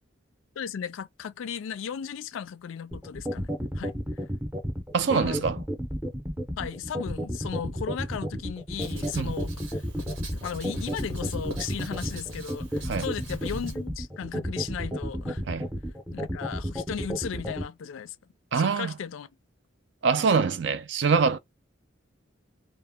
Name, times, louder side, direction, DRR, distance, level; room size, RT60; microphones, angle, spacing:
voice 1, 0.6-3.9 5.1-5.5 6.6-9.8 10.4-15.4 16.1-18.2 18.5-19.3, left 7 dB, 75° left, 0.3 m, -36 dB
sound 1, 2.9-17.6, equal, 10° right, 0.6 m, -31 dB
voice 2, 4.9-5.6 9.2-9.3 12.9-13.1 15.5-15.7 18.5-18.9 20.0-21.4, right 5 dB, 60° right, 0.4 m, -24 dB
Writing, 8.8-13.8, right 1 dB, 85° right, 1.0 m, -40 dB
2.1 x 2.1 x 3.4 m
head